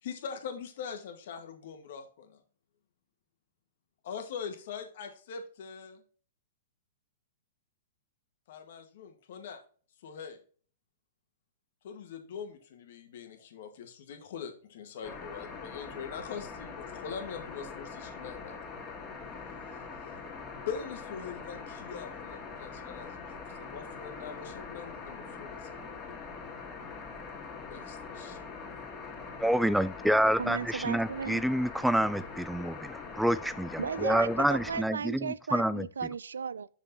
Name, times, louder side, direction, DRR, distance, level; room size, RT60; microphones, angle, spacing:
voice 1, 0.0-2.4 4.0-6.0 8.5-9.6 10.0-10.4 11.8-18.5 20.7-25.8 27.7-28.4, left 6 dB, 65° left, 1.8 m, -42 dB
sound 1, 15.0-34.8, left 5 dB, 25° left, 2.2 m, -43 dB
voice 2, 29.4-35.2 35.5-35.9, right 1 dB, ahead, 0.3 m, -28 dB
voice 3, 30.4-31.4 33.8-36.7, right 6 dB, 85° right, 0.4 m, -35 dB
6.5 x 5.7 x 4.2 m
hypercardioid pair, 120°, 0 cm